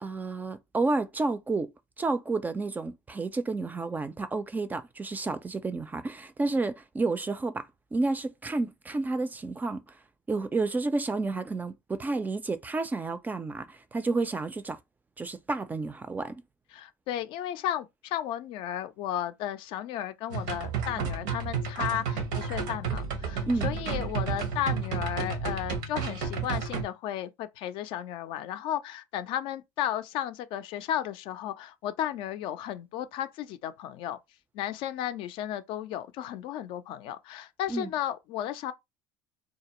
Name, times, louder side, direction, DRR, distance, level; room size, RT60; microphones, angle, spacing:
voice 1, 0.0-1.7 2.0-7.7 7.9-9.8 10.3-14.8 15.2-16.4 23.5-23.7 37.7-37.9, right 3 dB, 15° right, 0.4 m, -30 dB
voice 2, 16.7-34.2 34.5-38.7, left 11 dB, 60° left, 0.4 m, -34 dB
sound 1, 20.3-26.8, right 5 dB, 75° right, 0.8 m, -31 dB
2.3 x 2.0 x 2.9 m
hypercardioid pair, 85°, 10 cm